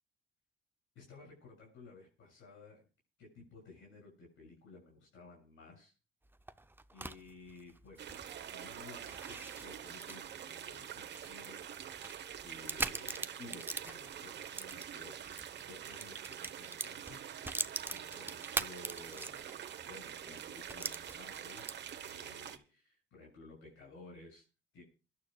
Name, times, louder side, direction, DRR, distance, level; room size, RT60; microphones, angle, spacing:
voice 1, 0.9-2.9 3.2-5.9 6.9-8.2 8.5-11.7 12.4-19.5 19.8-24.4 24.7-24.8, left 3 dB, 80° left, -1 dB, 7.3 m, -55 dB
sound 1, 6.2-15.5 15.8-19.7 20.0-20.1 20.7-22.0, right 2 dB, 10° right, 0.7 m, -42 dB
sound 2, 8.0-22.6, right 9 dB, 60° right, 1.2 m, -46 dB
28.5 x 12.0 x 2.4 m, 0.33 s
cardioid pair, 90°, 20 cm